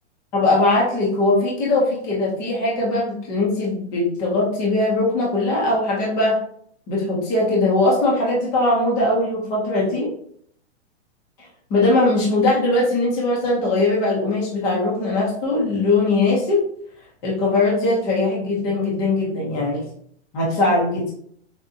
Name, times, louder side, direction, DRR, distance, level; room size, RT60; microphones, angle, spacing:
voice 1, 0.3-6.4 6.9-10.1 11.7-16.6 17.2-19.9 20.3-21.1, left 2 dB, 10° left, -4 dB, 0.5 m, -20 dB
6.1 x 2.1 x 2.7 m, 0.62 s
hypercardioid pair, 170°, 35 cm